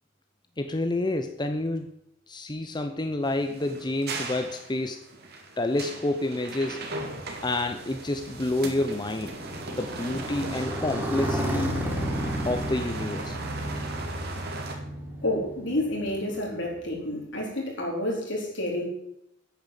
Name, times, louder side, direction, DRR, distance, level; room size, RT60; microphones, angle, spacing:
voice 1, 0.6-1.9 2.3-5.0 5.6-6.9 7.4-9.3 9.7-11.8 12.4-13.4, left 2 dB, 25° left, 7 dB, 0.7 m, -29 dB
sound 1, 3.2-14.7, right 3 dB, 55° right, 2.3 m, -38 dB
Motorcycle, 7.4-17.1, equal, 10° right, 3.5 m, -33 dB
voice 2, 15.2-18.9, left 1 dB, 70° left, -1 dB, 4.3 m, -29 dB
9.2 x 8.7 x 7.3 m, 0.77 s
head